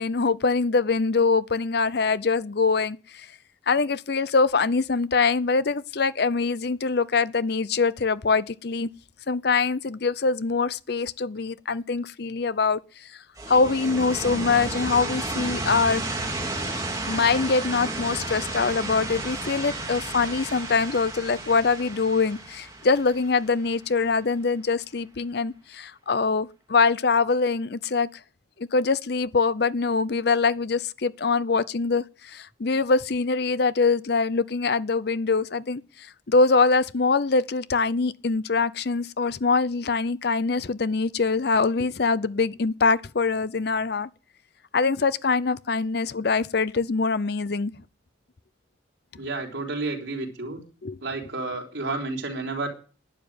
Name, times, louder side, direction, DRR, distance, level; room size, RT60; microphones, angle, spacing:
voice 1, 0.0-3.3 3.7-8.9 9.3-12.8 13.5-16.0 17.1-28.1 28.6-44.1 44.7-47.7 50.8-51.0, left 4 dB, 60° left, 0.7 m, -23 dB
sound 1, 13.4-24.1, right 2 dB, 20° right, 2.8 m, -32 dB
voice 2, 49.1-50.6 51.0-52.7, right 3 dB, 85° right, 4.0 m, -31 dB
11.5 x 9.9 x 8.8 m
head